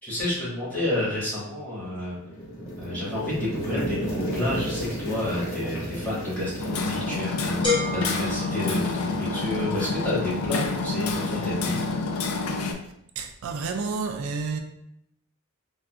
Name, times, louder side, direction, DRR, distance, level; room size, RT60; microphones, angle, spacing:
voice 1, 0.0-2.2 2.8-7.7 7.9-12.0, left 1 dB, 10° left, 1.5 m, -30 dB
sound 1, 2.1-8.1, equal, 65° left, 0.9 m, -33 dB
Hammer, 6.6-12.7, left 3 dB, 85° left, 0.4 m, -28 dB
sound 2, 7.6-9.5, left 3 dB, 25° left, 0.9 m, -30 dB
voice 2, 13.2-14.6, right 4 dB, 75° right, 0.3 m, -30 dB
3.7 x 2.2 x 2.4 m
head